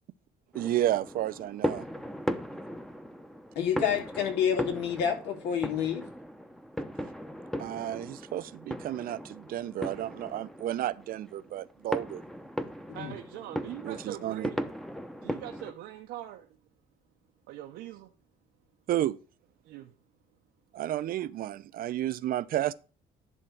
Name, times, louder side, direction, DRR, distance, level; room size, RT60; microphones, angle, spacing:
sound 1, 0.5-15.7, equal, ahead, 0.8 m, -38 dB
voice 1, 0.5-1.8 7.6-12.2 13.8-14.5 18.9-19.2 20.7-22.7, right 13 dB, 60° right, 0.6 m, -32 dB
voice 2, 3.5-6.1 12.9-13.1, left 8 dB, 85° left, 2.7 m, -28 dB
voice 3, 12.9-14.6 15.2-16.5 17.5-18.1 19.6-19.9, right 13 dB, 90° right, 0.9 m, -42 dB
11.0 x 3.6 x 5.8 m
cardioid pair, 110°, 17 cm